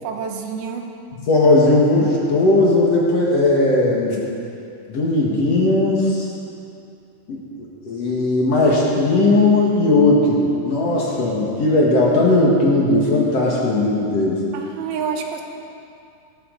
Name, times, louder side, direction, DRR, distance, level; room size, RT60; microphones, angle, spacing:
voice 1, 0.0-0.9 14.5-15.4, right 6 dB, 85° right, 3 dB, 3.0 m, -28 dB
voice 2, 1.2-4.2 4.9-6.3 7.3-7.4 7.9-14.4, left 2 dB, 50° left, -4 dB, 2.4 m, -17 dB
18.0 x 14.0 x 4.1 m, 2.5 s
omnidirectional pair, 4.3 m